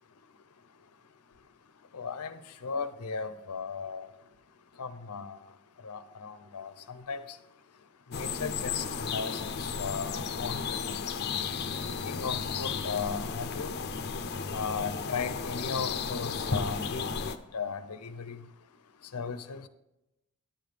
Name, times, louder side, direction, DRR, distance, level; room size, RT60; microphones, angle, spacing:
voice 1, 1.9-4.1 4.8-5.4 5.8-7.4 8.1-11.0 12.1-13.8 14.5-17.1 17.5-18.4 19.1-19.7, left 5 dB, 85° left, 12 dB, 0.6 m, -36 dB
sound 1, 8.1-17.4, left 5 dB, 45° left, 0.5 m, -34 dB
10.0 x 8.6 x 3.3 m, 0.90 s
head